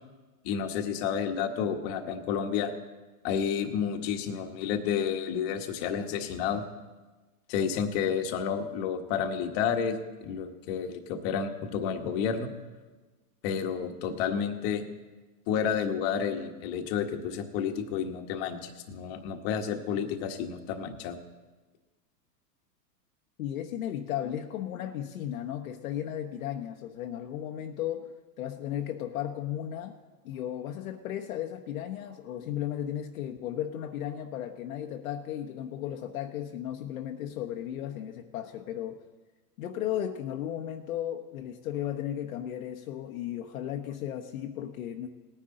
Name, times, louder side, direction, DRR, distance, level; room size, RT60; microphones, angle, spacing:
voice 1, 0.4-2.7 3.2-6.6 7.5-12.5 13.4-14.8 15.5-21.2, left 7 dB, 40° left, 6 dB, 1.3 m, -30 dB
voice 2, 23.4-29.9 30.2-39.0 39.6-45.1, left 11 dB, 60° left, 3 dB, 1.0 m, -35 dB
19.0 x 9.9 x 3.8 m, 1.2 s
hypercardioid pair, 140°, 47 cm